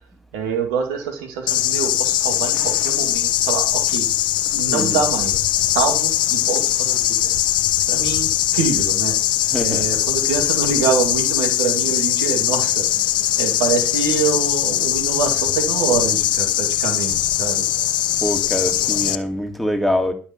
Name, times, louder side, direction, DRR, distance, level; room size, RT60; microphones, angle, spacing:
voice 1, 0.3-4.1 4.5-7.3 7.9-9.1 9.6-17.7, right 6 dB, 80° right, 2.1 m, -25 dB
sound 1, 1.5-19.2, left 13 dB, 65° left, 0.7 m, -20 dB
voice 2, 4.7-5.0 9.4-9.9 18.2-20.1, left 1 dB, ahead, 2.2 m, -24 dB
11.5 x 5.4 x 6.9 m
hypercardioid pair, 55°, 8 cm